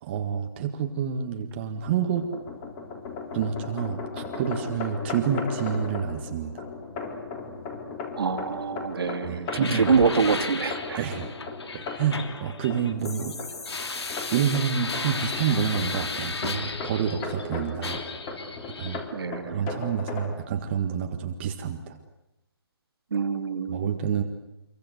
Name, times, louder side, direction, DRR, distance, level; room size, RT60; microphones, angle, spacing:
voice 1, 0.0-2.3 3.3-6.6 9.2-9.9 11.0-11.3 11.7-13.4 14.3-18.0 18.8-19.0 19.5-22.0 23.7-24.2, right 7 dB, 25° right, 5 dB, 1.8 m, -28 dB
sound 1, 1.9-20.3, left 4 dB, 20° left, 3.9 m, -37 dB
voice 2, 8.2-11.0 19.1-19.7 23.1-24.0, right 5 dB, 65° right, 7 dB, 2.8 m, -25 dB
sound 2, 9.5-17.5 17.8-19.0, left 4 dB, 80° left, 3.4 m, -35 dB
27.0 x 23.5 x 8.2 m, 0.90 s
hypercardioid pair, 165°, 14 cm